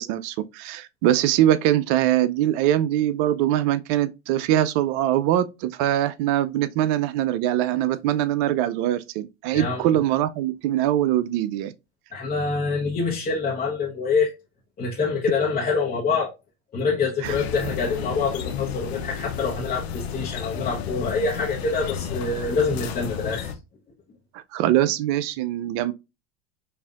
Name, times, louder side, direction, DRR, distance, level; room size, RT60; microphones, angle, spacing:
voice 1, 0.0-11.7 17.2-17.4 24.3-25.9, right 12 dB, 55° right, 0.5 m, -22 dB
voice 2, 9.5-10.0 12.1-14.3 14.8-16.3 16.7-23.5, left 4 dB, 25° left, 1.0 m, -25 dB
sound 1, 17.2-23.5, left 7 dB, 85° left, 0.8 m, -32 dB
5.5 x 2.6 x 2.4 m
supercardioid pair, 105°, 31 cm